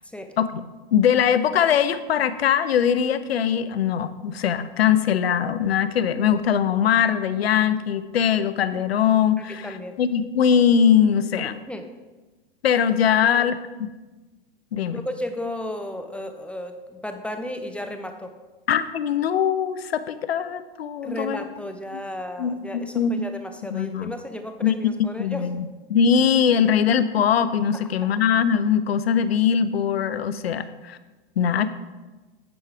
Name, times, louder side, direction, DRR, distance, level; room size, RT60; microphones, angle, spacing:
voice 1, 0.0-0.4 9.4-10.0 11.7-11.9 13.1-13.5 14.9-18.3 21.0-25.5, left 1 dB, 5° left, 6 dB, 0.5 m, -34 dB
voice 2, 0.9-11.5 12.6-13.9 14.7-15.0 18.7-21.4 22.4-23.3 23.7-24.1 24.6-24.7 25.2-31.0 31.4-31.7, left 8 dB, 90° left, 13 dB, 0.6 m, -21 dB
9.6 x 4.7 x 4.8 m, 1.2 s
hypercardioid pair, 115°, 30 cm